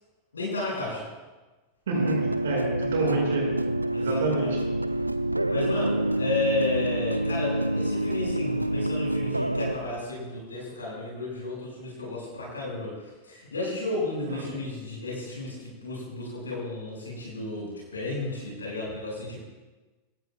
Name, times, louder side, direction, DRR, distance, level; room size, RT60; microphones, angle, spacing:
voice 1, 0.3-1.1 3.9-4.5 5.5-19.4, left 2 dB, 70° left, -4 dB, 6.7 m, -33 dB
voice 2, 1.9-3.5 4.0-4.5 14.2-14.4, right 3 dB, 60° right, -2 dB, 6.8 m, -29 dB
sound 1, 1.9-9.8, right 1 dB, 85° right, 0.7 m, -27 dB
27.5 x 17.5 x 2.5 m, 1.2 s
figure-of-eight pair, 90°, 0 cm